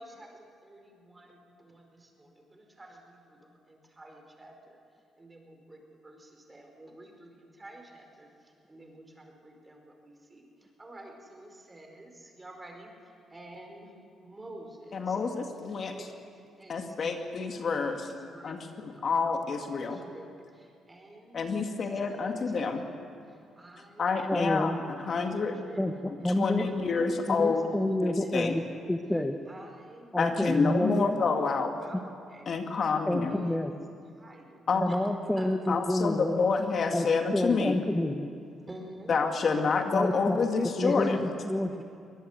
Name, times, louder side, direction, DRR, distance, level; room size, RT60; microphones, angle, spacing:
voice 1, 0.0-4.8 5.2-10.4 10.8-13.9 14.2-16.2 16.6-17.1 17.4-17.5 17.8-23.0 23.3-24.4 25.0-28.7 29.4-30.1 30.5-33.8 34.1-35.0 35.4-35.5 38.7-39.1 40.9-41.3, right 1 dB, 20° right, 2 dB, 4.8 m, -49 dB
voice 2, 14.9-15.9 16.7-18.1 18.4-20.0 21.3-22.8 24.0-24.7 25.1-25.6 26.1-27.6 28.0-28.6 30.2-31.7 32.5-33.4 34.7-34.9 35.7-37.8 39.1-41.2, left 4 dB, 50° left, 4 dB, 2.0 m, -28 dB
voice 3, 24.3-24.8 25.8-25.9 26.2-26.7 27.3-29.4 30.1-31.1 33.1-33.7 34.8-36.4 36.9-37.1 37.3-38.3 39.9-40.4 40.8-41.7, left 1 dB, 10° left, 7 dB, 1.1 m, -28 dB
23.0 x 20.0 x 8.2 m, 2.4 s
cardioid pair, 90°, 0 cm